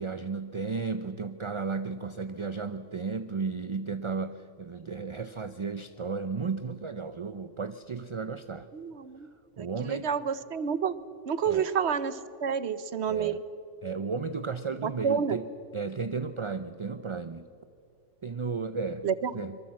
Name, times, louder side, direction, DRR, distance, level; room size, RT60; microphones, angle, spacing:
voice 1, 0.0-8.7 9.6-10.1 11.4-11.6 13.1-13.4 13.8-15.5 15.7-17.5 18.2-19.1 19.3-19.6, right 4 dB, 35° right, 11 dB, 0.5 m, -34 dB
voice 2, 8.7-9.3 9.6-11.0 11.3-13.4 14.8-15.4 19.0-19.4, right 7 dB, 65° right, 15 dB, 1.1 m, -29 dB
25.0 x 23.0 x 7.5 m, 2.5 s
omnidirectional pair, 1.3 m